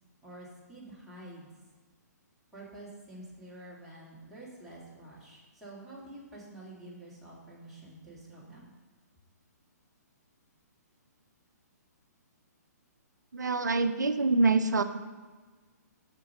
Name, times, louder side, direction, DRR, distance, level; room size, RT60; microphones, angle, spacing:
voice 1, 0.2-1.5 2.5-8.7, right 1 dB, ahead, -9 dB, 2.1 m, -48 dB
voice 2, 13.3-14.8, right 3 dB, 90° right, 8 dB, 0.5 m, -25 dB
5.5 x 5.1 x 6.4 m, 1.4 s
hypercardioid pair, 135°, 9 cm